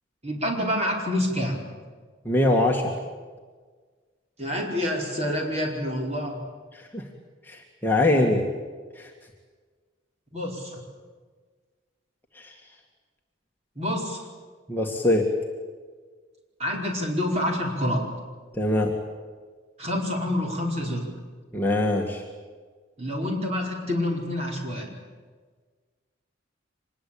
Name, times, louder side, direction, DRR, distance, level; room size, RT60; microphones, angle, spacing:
voice 1, 0.2-1.7 4.4-6.4 10.3-10.8 13.7-14.3 16.6-18.1 19.8-21.1 23.0-25.0, left 1 dB, 35° right, 0 dB, 4.9 m, -27 dB
voice 2, 2.3-2.9 6.7-7.0 7.5-8.4 9.0-9.1 12.4-12.5 14.7-15.3 18.5-18.9 21.5-22.2, left 1 dB, 10° left, 0 dB, 2.0 m, -23 dB
25.5 x 20.5 x 8.7 m, 1.5 s
head